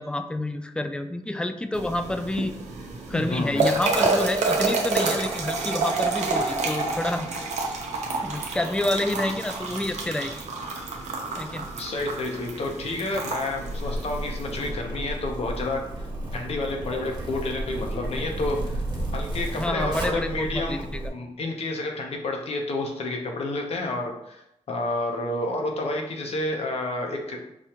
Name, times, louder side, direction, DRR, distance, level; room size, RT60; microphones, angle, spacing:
voice 1, 0.0-2.6 3.1-7.3 8.2-10.3 11.4-11.7 19.5-21.1, left 1 dB, 10° left, 8 dB, 0.3 m, -28 dB
sound 1, 1.7-14.7, right 3 dB, 85° right, 0.6 m, -29 dB
voice 2, 3.1-3.7 11.8-16.1 16.3-18.8 19.1-20.8 21.1-24.4 24.7-27.4, left 2 dB, 60° left, 2 dB, 0.8 m, -30 dB
Zipper (clothing), 13.6-21.1, right 1 dB, 40° right, 1.1 m, -32 dB
4.9 x 2.3 x 2.9 m, 0.82 s
cardioid pair, 80°, 12 cm